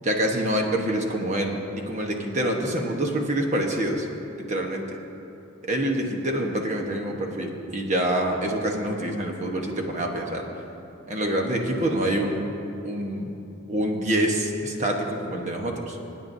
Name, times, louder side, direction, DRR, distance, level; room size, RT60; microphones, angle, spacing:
voice 1, 0.0-4.1 4.5-5.0 5.7-10.4 11.1-12.4 12.8-13.3 13.7-16.0, right 1 dB, 35° right, 1 dB, 1.2 m, -26 dB
25.5 x 9.4 x 2.7 m, 2.8 s
head